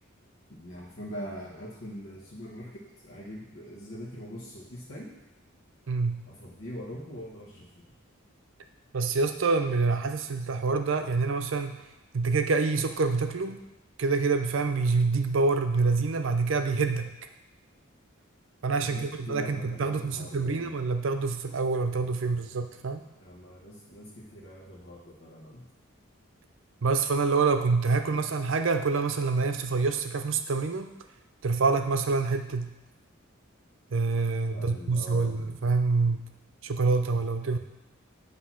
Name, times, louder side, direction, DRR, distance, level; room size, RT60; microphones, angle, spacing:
voice 1, 0.5-5.1 6.3-7.8 18.8-20.7 23.2-25.6 34.5-35.3, equal, 65° left, -6 dB, 1.1 m, -43 dB
voice 2, 5.9-6.2 8.9-11.8 12.1-13.6 14.0-17.1 18.6-23.0 26.8-30.9 31.4-32.7 33.9-36.2 36.6-37.6, right 4 dB, 60° right, 6 dB, 0.5 m, -26 dB
8.0 x 2.9 x 5.8 m, 1.0 s
head